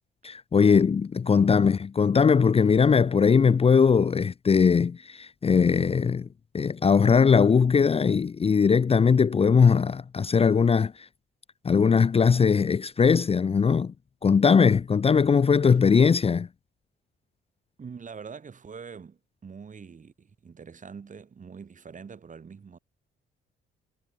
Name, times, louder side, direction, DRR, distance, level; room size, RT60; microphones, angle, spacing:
voice 1, 0.2-6.3 6.5-11.1 11.6-13.9 14.2-16.5, left 6 dB, 30° left, 0.6 m, -20 dB
voice 2, 17.8-22.8, right 6 dB, 40° right, 4.5 m, -44 dB
cardioid pair, 90°, 20 cm